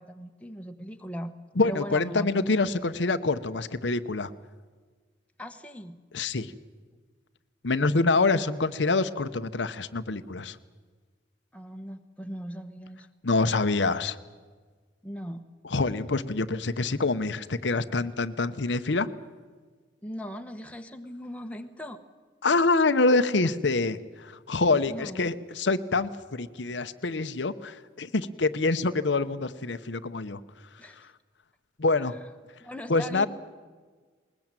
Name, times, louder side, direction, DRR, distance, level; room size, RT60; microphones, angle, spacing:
voice 1, 0.0-1.3 1.6-2.6 5.4-6.0 11.5-13.1 15.0-15.5 20.0-22.0 24.9-25.3 30.8-31.1 32.0-32.2 32.6-33.3, equal, 5° left, 5 dB, 1.2 m, -39 dB
voice 2, 1.6-4.3 6.1-6.5 7.6-10.6 13.2-14.2 15.7-19.1 22.4-30.4 31.8-32.1 32.9-33.3, left 3 dB, 75° left, 11 dB, 0.9 m, -26 dB
20.5 x 20.0 x 9.0 m, 1.4 s
head